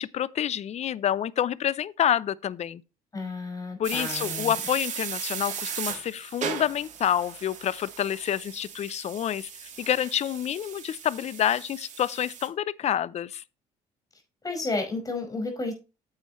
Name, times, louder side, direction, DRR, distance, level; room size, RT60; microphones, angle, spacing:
voice 1, 0.0-2.8 3.8-9.5 9.8-13.4, left 10 dB, 50° left, 0.6 m, -28 dB
voice 2, 3.1-4.6 14.4-15.7, left 3 dB, 25° left, 5.4 m, -32 dB
sound 1, 3.8-12.5, right 7 dB, 55° right, 2.6 m, -37 dB
9.6 x 8.1 x 3.1 m
cardioid pair, 90°, 15 cm